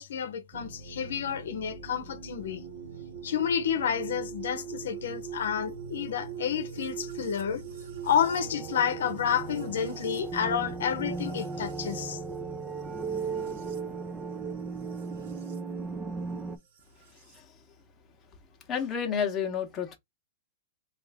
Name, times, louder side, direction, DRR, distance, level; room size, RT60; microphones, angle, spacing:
voice 1, 0.0-2.6 3.2-7.6 8.0-12.2, left 8 dB, 85° left, 0.7 m, -30 dB
sound 1, 0.5-15.6 16.8-17.4, right 7 dB, 60° right, 1.1 m, -43 dB
sound 2, 8.1-16.6, right 4 dB, 15° right, 0.4 m, -37 dB
voice 2, 17.1-17.7 18.7-20.0, left 7 dB, 20° left, 0.9 m, -31 dB
3.5 x 2.4 x 3.4 m
supercardioid pair, 155°, 0 cm